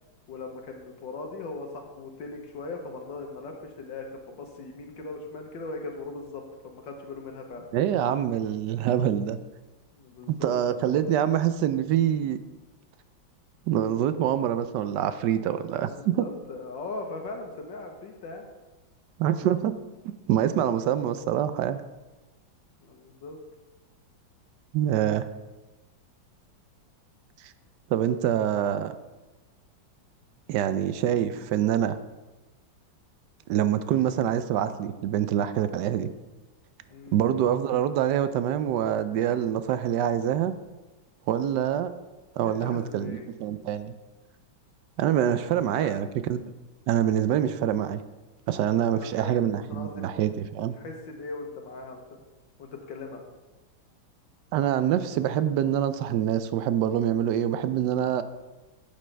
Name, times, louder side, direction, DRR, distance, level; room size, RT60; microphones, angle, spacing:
voice 1, 0.3-7.7 9.9-11.0 15.7-18.5 22.8-23.4 36.9-37.2 42.4-43.2 45.7-45.9 48.9-50.1 50.7-52.2 52.6-53.2, left 3 dB, 70° left, 2 dB, 1.8 m, -39 dB
voice 2, 7.7-9.4 10.3-12.4 13.7-16.2 19.2-19.7 20.3-21.8 24.7-25.3 27.9-28.9 30.5-32.0 33.5-36.1 37.1-40.5 41.3-41.9 42.4-43.9 45.0-46.5 46.9-48.0 48.5-50.7 54.5-58.2, right 10 dB, 75° right, 12 dB, 1.1 m, -25 dB
11.5 x 8.5 x 3.3 m, 1.1 s
omnidirectional pair, 2.1 m